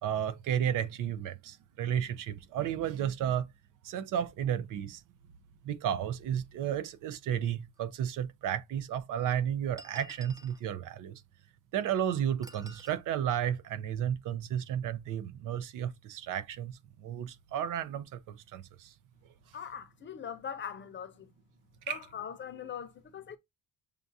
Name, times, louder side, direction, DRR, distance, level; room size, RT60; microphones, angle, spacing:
voice 1, 0.0-3.5 3.8-5.0 5.6-11.2 11.7-16.7 17.0-18.9 21.9-22.0, right 9 dB, 60° right, 0.6 m, -33 dB
sound 1, 7.8-7.9 8.8-8.9 9.8-10.6 12.4-13.0, right 2 dB, 10° right, 0.5 m, -51 dB
voice 2, 19.5-21.3 21.9-23.4, left 8 dB, 30° left, 0.7 m, -41 dB
6.6 x 2.3 x 2.6 m
cardioid pair, 145°, 36 cm